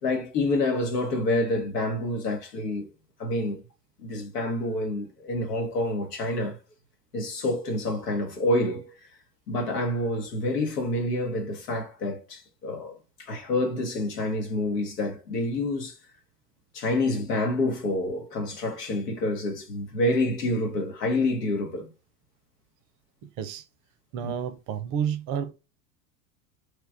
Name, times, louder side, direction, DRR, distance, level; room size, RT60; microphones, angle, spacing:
voice 1, 0.0-2.8 3.2-3.6 4.0-6.6 7.1-8.9 9.5-16.0 16.7-21.9 24.2-24.3, left 1 dB, 75° left, 1.3 m, -28 dB
voice 2, 24.1-25.5, right 8 dB, 40° right, 0.6 m, -30 dB
3.2 x 2.3 x 3.4 m
hypercardioid pair, 90°, 48 cm